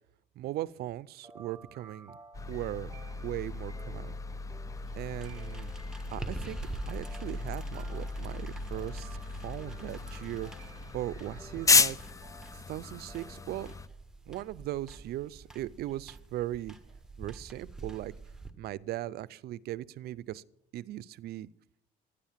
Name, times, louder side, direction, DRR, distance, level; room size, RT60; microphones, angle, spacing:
voice 1, 0.4-2.2 2.5-4.2 5.0-5.7 6.1-6.6 6.8-9.2 9.4-10.5 10.9-12.0 12.7-13.7 14.3-16.7 17.2-18.1 18.6-20.4 20.7-21.5, right 14 dB, 70° right, 19 dB, 0.5 m, -38 dB
sound 1, 1.2-13.6, right 2 dB, 20° right, 1.6 m, -55 dB
sound 2, 2.3-13.9, left 4 dB, 20° left, 0.5 m, -33 dB
sound 3, 4.7-18.5, right 3 dB, 5° right, 1.2 m, -46 dB
12.5 x 9.9 x 7.3 m, 0.79 s
cardioid pair, 110°, 17 cm